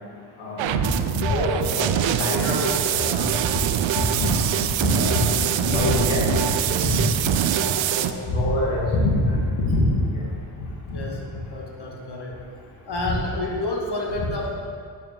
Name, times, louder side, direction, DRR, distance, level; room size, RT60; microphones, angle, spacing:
voice 1, 0.4-0.9 1.1-3.3 4.0-4.5 4.8-6.3 6.7-7.0 7.5-9.9 10.1-10.3, left 1 dB, 85° left, -4 dB, 1.9 m, -24 dB
sound 1, 0.6-8.1, right 10 dB, 70° right, 0.6 m, -24 dB
voice 2, 10.9-12.5 12.9-14.6, left 2 dB, 55° left, -2 dB, 2.0 m, -30 dB
11.5 x 6.3 x 3.8 m, 2.1 s
supercardioid pair, 45°, 48 cm